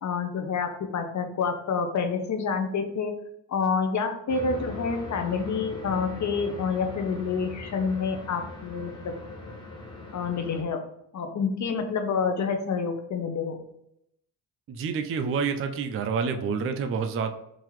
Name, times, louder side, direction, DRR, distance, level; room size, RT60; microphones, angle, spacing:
voice 1, 0.0-3.2 3.5-9.2 10.1-10.9 11.1-13.7, left 5 dB, 40° left, 6 dB, 0.7 m, -28 dB
sound 1, 4.3-10.6, left 3 dB, 10° left, 1.1 m, -40 dB
voice 2, 14.7-17.3, right 5 dB, 30° right, 7 dB, 0.4 m, -28 dB
3.8 x 2.8 x 3.0 m, 0.78 s
cardioid pair, 95°, 45 cm